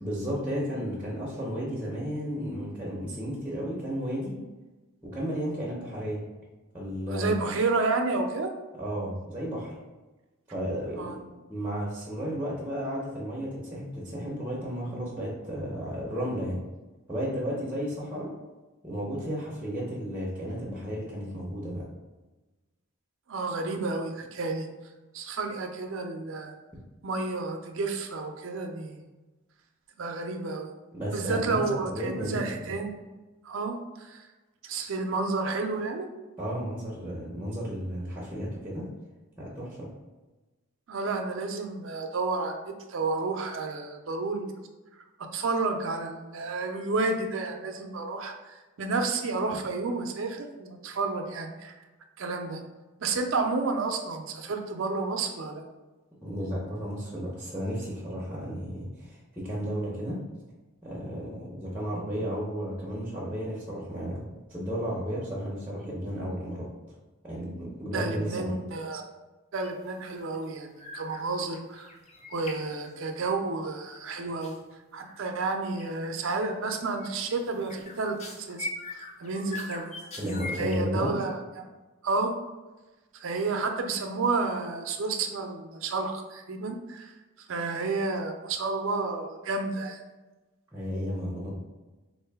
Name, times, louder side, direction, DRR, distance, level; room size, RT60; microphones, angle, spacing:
voice 1, 0.0-4.4 5.0-6.2 6.7-7.3 8.8-9.7 10.5-11.1 11.5-16.6 17.1-18.3 18.8-21.8 30.9-32.7 36.4-38.9 39.4-39.9 56.2-60.2 60.8-66.7 67.2-68.5 80.2-81.1 90.7-91.5, equal, 10° right, -5 dB, 0.6 m, -33 dB
voice 2, 7.1-8.5 11.0-11.2 23.3-24.7 25.1-26.5 27.0-29.0 30.0-30.7 31.1-33.0 33.4-34.3 34.6-36.1 40.9-44.5 45.2-51.7 52.2-52.6 53.0-55.6 67.9-69.0 69.5-71.9 72.3-74.5 74.9-79.9 80.6-81.7 82.0-82.3 83.1-87.1 87.4-90.0, right 3 dB, 60° right, 4 dB, 0.5 m, -31 dB
sound 1, 69.6-70.0 70.2-70.5 70.8-71.2 71.5-73.3 74.4-74.6 75.1-75.5 75.8-76.0 76.3-76.6 77.0-80.8, left 2 dB, 30° left, 0.4 m, -41 dB
3.7 x 2.6 x 3.4 m, 1.2 s
head